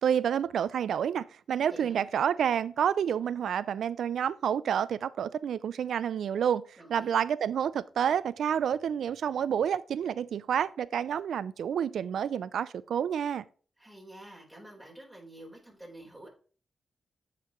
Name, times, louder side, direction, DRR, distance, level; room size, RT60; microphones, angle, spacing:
voice 1, 0.0-6.6 6.9-13.4, right 8 dB, 80° right, 0.3 m, -29 dB
voice 2, 1.7-2.1 6.8-7.1 13.8-16.3, right 1 dB, 5° right, 4.1 m, -48 dB
8.2 x 5.8 x 3.1 m
cardioid pair, 55°, 0 cm